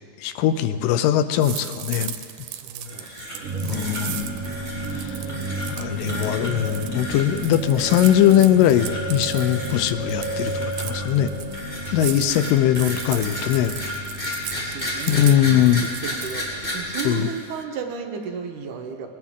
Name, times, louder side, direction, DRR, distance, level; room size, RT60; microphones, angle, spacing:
voice 1, 0.2-2.1 3.6-4.3 4.9-5.2 5.7-11.3 11.9-13.7 15.1-15.8 17.1-17.3, left 11 dB, 85° left, 11 dB, 2.3 m, -20 dB
sound 1, 1.4-17.6, right 11 dB, 90° right, 2.4 m, -37 dB
voice 2, 2.5-5.7 11.9-12.6 14.5-19.1, right 6 dB, 75° right, 3 dB, 2.5 m, -36 dB
sound 2, 2.9-3.5 3.7-4.0 4.4-4.9 5.3-5.7 6.1-6.6 6.9-7.3 7.8-8.1 8.5-9.0 9.3-9.8 10.2-11.1 11.5-17.0, left 1 dB, 15° left, 3.1 m, -33 dB
sound 3, 3.4-16.9, right 2 dB, 50° right, 2.2 m, -33 dB
20.5 x 18.0 x 3.7 m, 2.5 s
omnidirectional pair, 3.9 m